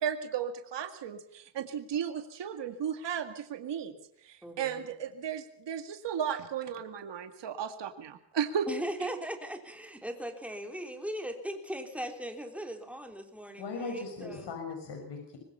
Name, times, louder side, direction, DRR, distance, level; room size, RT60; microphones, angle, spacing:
voice 1, 0.0-3.9 4.2-8.7, right 8 dB, 70° right, 7 dB, 2.2 m, -35 dB
voice 2, 4.4-4.8 8.7-14.6, right 1 dB, 5° right, 4 dB, 3.4 m, -39 dB
voice 3, 13.6-15.4, left 4 dB, 70° left, 4 dB, 5.8 m, -38 dB
24.5 x 20.5 x 5.7 m, 0.68 s
cardioid pair, 125°, 44 cm